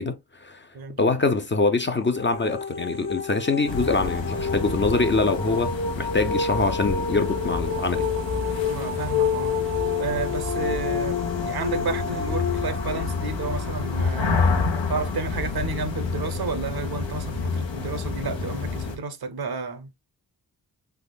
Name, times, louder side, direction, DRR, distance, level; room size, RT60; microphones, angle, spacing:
voice 1, 0.0-0.7 1.0-8.1, left 3 dB, 25° left, 0.5 m, -24 dB
sound 1, 1.9-14.8, left 5 dB, 60° left, 1.3 m, -29 dB
sound 2, 3.7-19.0, left 4 dB, 85° left, 0.9 m, -29 dB
voice 2, 8.7-9.5 9.8-14.5 14.9-19.9, right 4 dB, 60° right, 0.7 m, -31 dB
3.5 x 3.1 x 2.2 m
cardioid pair, 55°, 43 cm